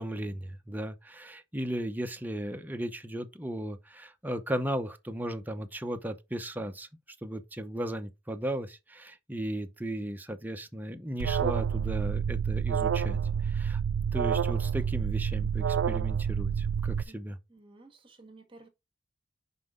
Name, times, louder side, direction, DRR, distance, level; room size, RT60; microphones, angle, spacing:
voice 1, 0.0-6.9 7.2-13.8 14.1-17.4, right 1 dB, 10° right, 0.7 m, -36 dB
Alarm, 11.2-17.0, right 7 dB, 75° right, 0.3 m, -28 dB
voice 2, 17.5-18.7, right 2 dB, 25° right, 1.7 m, -54 dB
5.8 x 5.2 x 3.7 m
head